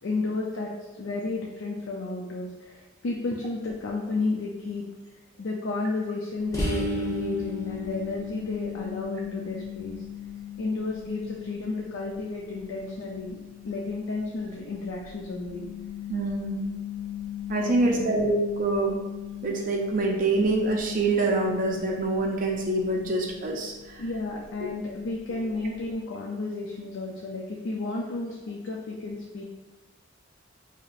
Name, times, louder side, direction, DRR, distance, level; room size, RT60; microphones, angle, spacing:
voice 1, 0.0-4.8 5.4-10.0 10.6-13.4 13.6-15.7 17.6-18.0 24.0-29.4, left 3 dB, 80° left, -2 dB, 0.4 m, -32 dB
sound 1, 6.5-24.0, left 5 dB, 15° left, 0.7 m, -37 dB
voice 2, 16.1-16.6 17.5-19.0 19.4-24.0 25.3-25.4, right 2 dB, 45° right, 0 dB, 0.4 m, -25 dB
4.7 x 2.8 x 2.4 m, 1.2 s
head